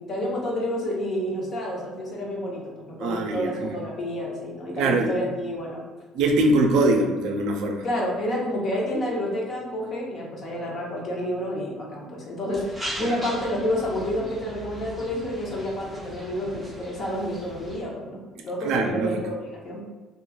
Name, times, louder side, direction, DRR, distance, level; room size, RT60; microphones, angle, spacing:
voice 1, 0.0-5.8 7.8-19.8, left 1 dB, 40° left, -2 dB, 0.8 m, -29 dB
voice 2, 3.0-3.7 4.8-5.1 6.1-7.8 13.0-13.1 18.6-19.2, right 2 dB, 75° right, 3 dB, 0.4 m, -22 dB
sound 1, 12.5-17.8, right 1 dB, 5° right, 0.9 m, -39 dB
3.0 x 2.4 x 2.3 m, 1.2 s
cardioid pair, 140°, 0 cm